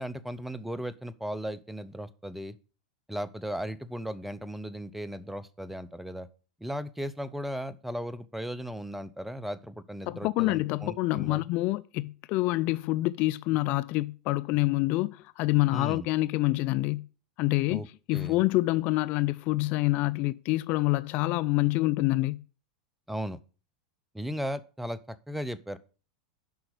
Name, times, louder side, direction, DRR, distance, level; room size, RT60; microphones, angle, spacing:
voice 1, 0.0-2.6 3.1-6.3 6.6-11.4 15.7-16.1 17.7-18.4 23.1-23.4 24.1-25.8, equal, 5° right, 0.7 m, -36 dB
voice 2, 10.1-17.1 17.4-17.8 18.1-22.4, left 20 dB, 45° left, 0.4 m, -27 dB
7.9 x 5.9 x 6.5 m
hypercardioid pair, 90°, 4 cm